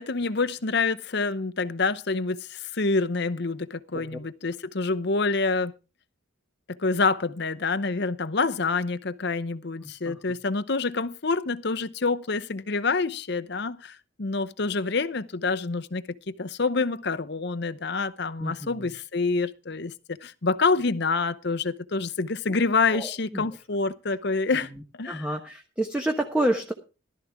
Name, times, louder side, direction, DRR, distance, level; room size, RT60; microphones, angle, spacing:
voice 1, 0.0-5.7 6.8-19.9 20.2-24.7 25.0-25.3, left 4 dB, 55° left, 0.8 m, -27 dB
voice 2, 9.8-10.2 18.4-18.9 22.5-22.6 22.9-23.4 25.1-26.7, right 1 dB, 5° right, 1.1 m, -29 dB
15.0 x 12.5 x 3.6 m
head